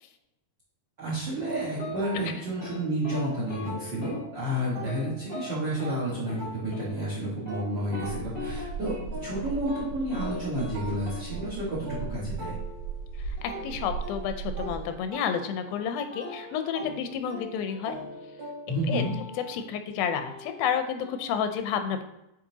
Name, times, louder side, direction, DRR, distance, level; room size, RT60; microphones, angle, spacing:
voice 1, 1.0-9.0 9.2-12.6 18.7-19.1, right 1 dB, 50° right, -6 dB, 1.4 m, -31 dB
sound 1, 1.5-4.4 4.8-13.1 13.5-18.9, equal, 85° right, 3.5 m, -42 dB
sound 2, 1.8-1.9 2.3-2.8 3.0-3.2 3.5-3.7 4.0-4.2 4.5-5.0 5.3-5.5 5.8-5.9 6.3-6.4 6.7-6.9 7.3-8.5 8.8-9.0 9.4-9.8 10.1-10.3 10.5-10.7 11.0-11.2 13.4-14.1 16.1-16.8 17.7-18.5 18.9-19.7 20.0-21.2, left 3 dB, 30° left, 1.1 m, -42 dB
sound 3, 8.0-15.0, right 5 dB, 70° right, 3.5 m, -37 dB
voice 2, 13.3-18.0 18.9-19.0 19.5-22.0, left 8 dB, 90° left, 8 dB, 2.5 m, -30 dB
8.7 x 4.3 x 2.8 m, 0.87 s
omnidirectional pair, 4.1 m